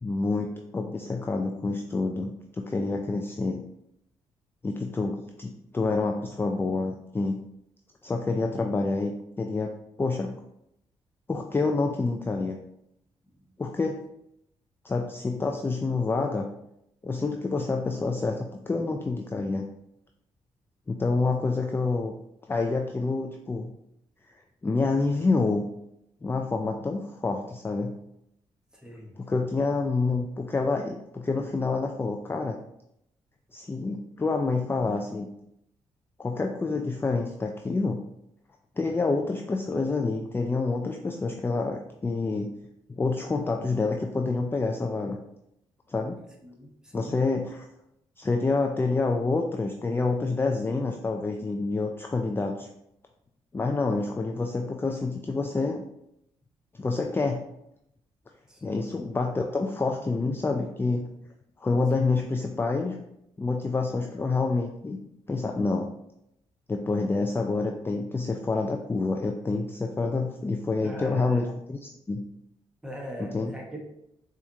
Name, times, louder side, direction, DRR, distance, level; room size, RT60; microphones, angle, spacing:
voice 1, 0.0-3.6 4.6-7.4 8.0-9.7 10.0-10.4 11.3-12.6 13.6-14.0 14.8-16.5 17.0-19.7 20.9-22.2 22.5-23.7 24.6-25.6 26.2-27.9 29.2-32.6 33.5-35.3 36.2-38.0 38.8-42.5 42.9-45.2 45.9-46.2 46.9-47.7 48.2-52.7 53.5-55.8 56.8-57.4 58.6-61.1 61.6-63.0 63.4-65.0 65.3-65.9 66.7-72.2 73.2-73.5, left 3 dB, 20° left, 3 dB, 0.3 m, -28 dB
voice 2, 28.7-29.2 46.4-47.1 53.9-54.0 58.5-58.8 61.9-62.1 70.8-71.5 72.8-73.8, equal, 5° right, -1 dB, 1.1 m, -40 dB
4.2 x 2.5 x 2.7 m, 0.80 s
supercardioid pair, 55°, 11 cm